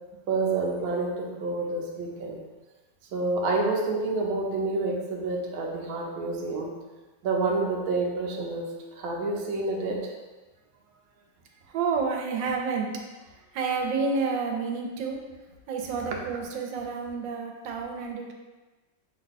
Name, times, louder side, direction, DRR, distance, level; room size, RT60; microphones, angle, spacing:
voice 1, 0.3-2.4 3.1-6.7 7.2-8.7 9.0-10.0, right 3 dB, 65° right, -1 dB, 1.0 m, -28 dB
voice 2, 11.7-12.9 13.2-15.2 15.7-18.3, right 5 dB, 85° right, 1 dB, 1.3 m, -29 dB
5.5 x 2.2 x 4.0 m, 1.2 s
omnidirectional pair, 2.0 m